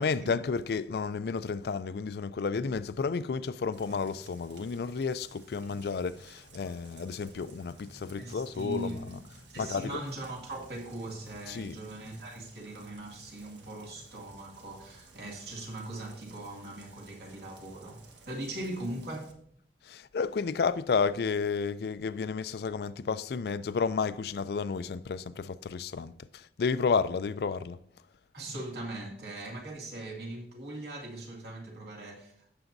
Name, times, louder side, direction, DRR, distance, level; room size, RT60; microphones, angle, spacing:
voice 1, 0.0-9.2 9.6-10.0 11.5-11.8 19.8-27.8, left 5 dB, 65° left, 0.4 m, -31 dB
Rain, 3.7-19.3, right 2 dB, 90° right, 1.4 m, -55 dB
voice 2, 8.2-9.2 9.5-19.3 28.3-32.5, right 1 dB, 65° right, 2.4 m, -40 dB
15.5 x 7.0 x 2.7 m
head